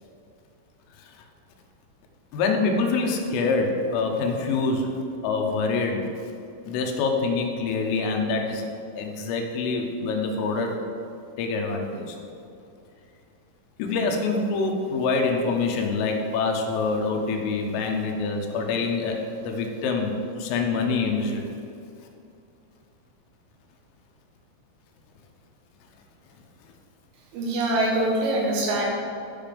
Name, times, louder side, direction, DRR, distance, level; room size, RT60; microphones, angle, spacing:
voice 1, 2.3-4.9 5.2-6.1 6.7-8.6 9.0-10.7 11.4-12.2 13.8-21.5, left 4 dB, 85° left, 2 dB, 3.6 m, -25 dB
voice 2, 27.3-28.9, right 1 dB, 75° right, -2 dB, 4.1 m, -24 dB
12.0 x 5.7 x 5.2 m, 2.6 s
omnidirectional pair, 5.8 m